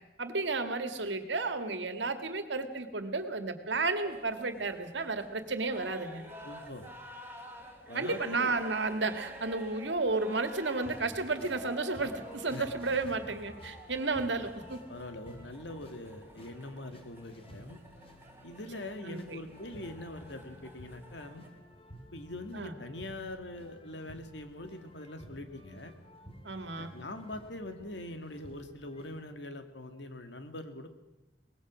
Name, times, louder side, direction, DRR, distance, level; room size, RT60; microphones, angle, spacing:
voice 1, 0.2-6.2 7.9-14.8 19.1-19.4 22.5-22.7 26.4-26.9, right 3 dB, 80° right, 8 dB, 2.0 m, -32 dB
sound 1, 4.0-21.5, equal, 15° right, 3.5 m, -50 dB
voice 2, 6.4-6.9 7.9-8.6 12.5-12.7 14.9-17.8 18.4-21.5 22.1-25.9 26.8-30.9, left 1 dB, 75° left, 7 dB, 2.1 m, -43 dB
sound 2, 10.7-29.2, equal, 30° left, 2.6 m, -53 dB
23.5 x 20.0 x 6.3 m, 1.0 s
head